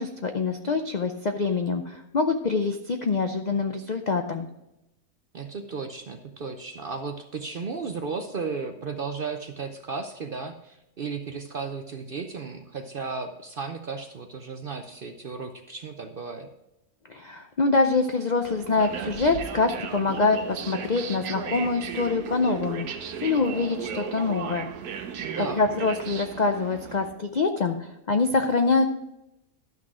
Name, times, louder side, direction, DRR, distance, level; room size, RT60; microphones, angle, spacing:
voice 1, 0.0-4.5 17.1-24.7 25.4-28.9, left 3 dB, 60° left, 5 dB, 0.4 m, -25 dB
voice 2, 5.3-16.5 25.2-25.6, right 4 dB, 55° right, 6 dB, 0.6 m, -34 dB
sound 1, 18.4-27.1, right 7 dB, 80° right, 1.3 m, -35 dB
12.0 x 6.2 x 4.9 m, 0.89 s
omnidirectional pair, 1.6 m